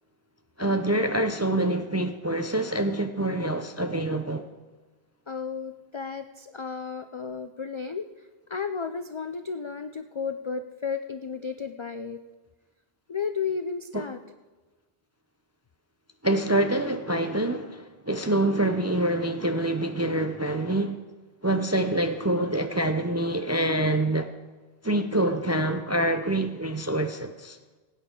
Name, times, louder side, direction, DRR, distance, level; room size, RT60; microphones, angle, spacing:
voice 1, 0.6-4.5 13.9-14.0 16.2-21.0 21.4-24.3 24.8-27.6, right 1 dB, 25° right, 0.3 m, -26 dB
voice 2, 5.3-8.1 8.5-12.2 13.1-14.2, left 5 dB, 55° left, 0.3 m, -33 dB
18.0 x 9.1 x 3.7 m
omnidirectional pair, 1.1 m